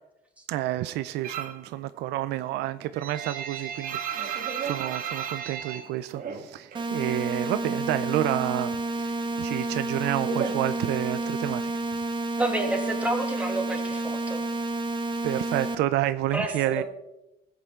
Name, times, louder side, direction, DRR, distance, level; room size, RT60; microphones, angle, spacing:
voice 1, 0.5-11.7 15.2-16.8, right 14 dB, 85° right, 0.5 m, -29 dB
sound 1, 1.2-1.7 2.0-6.9 7.2-8.2 8.5-11.3, right 7 dB, 55° right, 1.6 m, -34 dB
sound 2, 6.7-15.7, right 2 dB, 30° right, 1.0 m, -30 dB
voice 2, 12.4-14.4 16.3-16.8, right 2 dB, 10° right, 2.5 m, -29 dB
18.5 x 8.2 x 3.7 m
cardioid pair, 110°, 17 cm